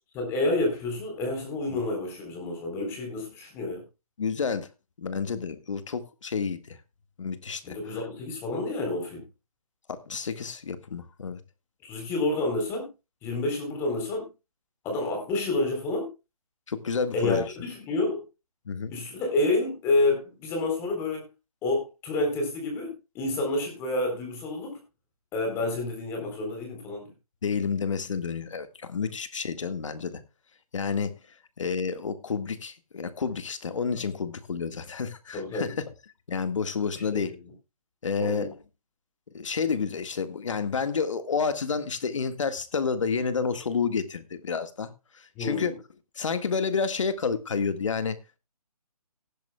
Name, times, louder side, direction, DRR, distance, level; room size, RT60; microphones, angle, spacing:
voice 1, 0.1-3.8 7.6-9.3 11.8-12.9 13.2-14.2 14.8-16.1 17.1-18.2 18.9-21.3 21.6-24.8 25.3-27.1 35.3-35.7 37.1-37.5 38.2-38.5 45.4-45.7, left 2 dB, 15° left, 3.8 m, -29 dB
voice 2, 4.2-4.7 5.0-6.8 7.2-8.0 9.9-11.4 16.7-17.5 18.7-18.9 27.4-30.2 30.7-31.1 31.6-35.8 36.3-37.3 38.0-38.6 39.3-44.9 45.4-45.7 46.2-48.2, left 5 dB, 55° left, 1.8 m, -30 dB
18.5 x 10.5 x 2.3 m
figure-of-eight pair, 160°, 19 cm